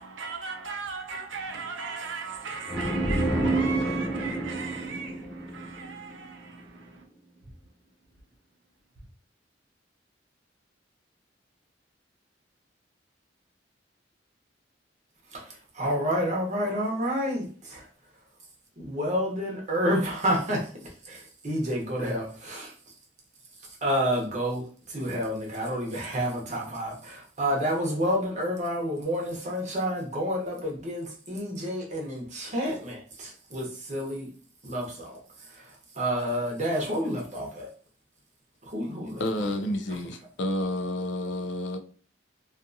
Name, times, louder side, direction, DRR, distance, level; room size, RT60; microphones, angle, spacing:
voice 1, 0.0-7.0, right 5 dB, 85° right, 0.6 m, -37 dB
sound 1, 2.7-6.3, right 2 dB, 15° left, 0.4 m, -28 dB
voice 2, 15.3-17.9 18.8-22.7 23.8-34.3 34.6-37.7 38.6-39.2, equal, 40° right, 0.9 m, -29 dB
voice 3, 39.2-41.8, left 1 dB, 75° left, 0.4 m, -30 dB
2.6 x 2.4 x 2.6 m
head